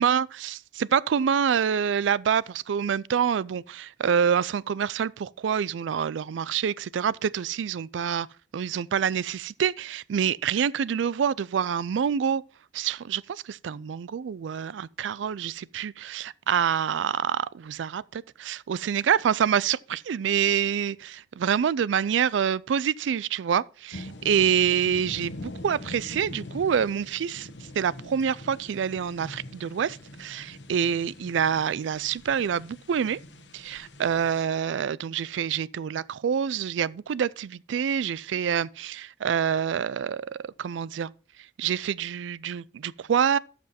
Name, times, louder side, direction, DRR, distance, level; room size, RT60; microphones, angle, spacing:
voice 1, 0.0-8.3 8.5-12.4 12.7-27.5 27.8-33.2 33.5-41.1 41.6-43.4, right 8 dB, 90° right, 0.4 m, -26 dB
sound 1, 23.9-34.4, left 1 dB, 70° left, 1.1 m, -43 dB
12.5 x 5.9 x 4.2 m
head